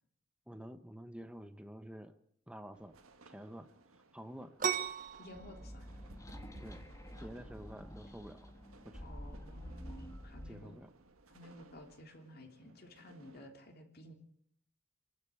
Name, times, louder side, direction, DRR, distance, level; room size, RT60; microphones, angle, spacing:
voice 1, 0.5-2.1 2.5-3.0 3.3-3.7 4.1-4.6 6.6-6.9 7.2-8.5 8.8-9.1 10.4-10.9, equal, 5° right, 8 dB, 1.0 m, -49 dB
sound 1, 2.7-13.5, right 2 dB, 85° right, 1.7 m, -60 dB
sound 2, 4.6-12.0, right 7 dB, 40° right, 1.2 m, -42 dB
voice 2, 5.2-5.8 9.0-10.8 11.3-14.1, left 1 dB, 45° left, 3 dB, 3.1 m, -54 dB
sound 3, 5.3-10.5, equal, 15° left, 1.6 m, -49 dB
27.5 x 12.0 x 8.5 m, 0.69 s
head